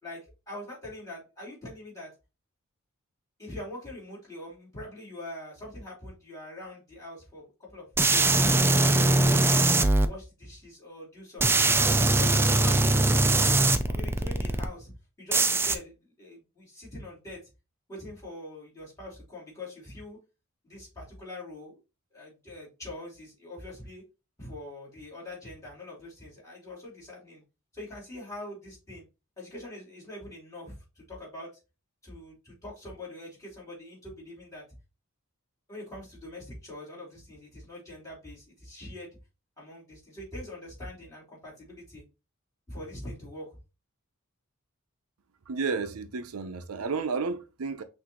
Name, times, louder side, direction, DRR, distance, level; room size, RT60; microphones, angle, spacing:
voice 1, 0.0-2.1 3.4-8.3 8.7-9.5 10.0-13.6 13.9-14.9 15.2-17.4 17.9-20.2 20.6-21.7 22.1-24.0 24.4-27.4 27.7-29.0 29.4-31.5 32.0-34.7 35.7-39.2 39.6-42.0 42.7-43.6, left 1 dB, 15° left, 2.8 m, -43 dB
sound 1, 8.0-10.1 11.4-14.7 15.3-15.8, right 2 dB, 10° right, 0.3 m, -22 dB
voice 2, 45.5-47.8, right 4 dB, 90° right, 0.6 m, -32 dB
5.9 x 2.7 x 2.9 m
head